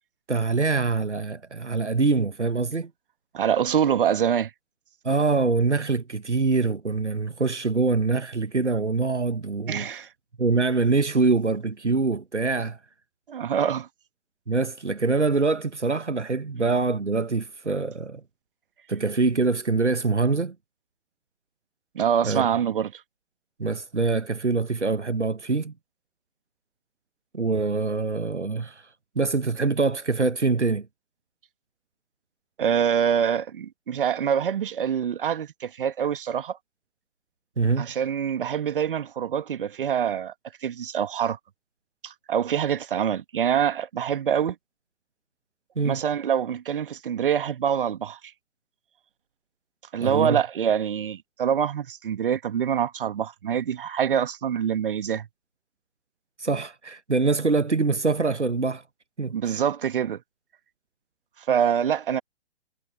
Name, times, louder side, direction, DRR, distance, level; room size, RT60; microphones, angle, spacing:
voice 1, 0.3-2.9 5.0-9.9 10.4-12.8 14.5-18.2 18.9-20.5 22.2-22.5 23.6-25.7 27.3-28.8 29.2-30.9 37.6-37.9 45.8-46.0 50.0-50.4 56.4-58.8 59.2-59.6, right 3 dB, 85° right, 1.0 m, -24 dB
voice 2, 3.3-4.5 9.7-10.1 13.3-13.9 21.9-23.0 32.6-36.6 37.8-40.3 40.6-41.4 42.0-44.5 45.8-48.3 49.9-55.3 59.3-60.2 61.5-62.2, right 8 dB, 50° right, 1.7 m, -25 dB
figure-of-eight pair, 125°, 34 cm